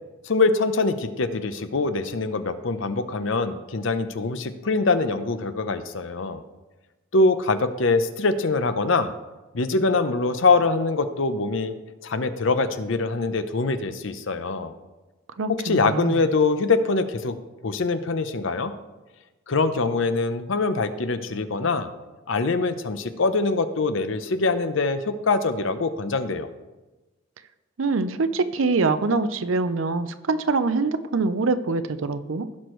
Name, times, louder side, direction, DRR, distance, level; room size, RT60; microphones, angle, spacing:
voice 1, 0.2-6.4 7.1-9.1 9.5-11.7 12.0-14.7 15.6-17.4 17.6-18.7 19.5-21.9 22.3-26.5, left 3 dB, 65° left, 10 dB, 0.7 m, -23 dB
voice 2, 15.4-16.2 27.8-32.5, right 3 dB, 70° right, 12 dB, 0.6 m, -24 dB
16.0 x 6.2 x 3.1 m, 1.1 s
head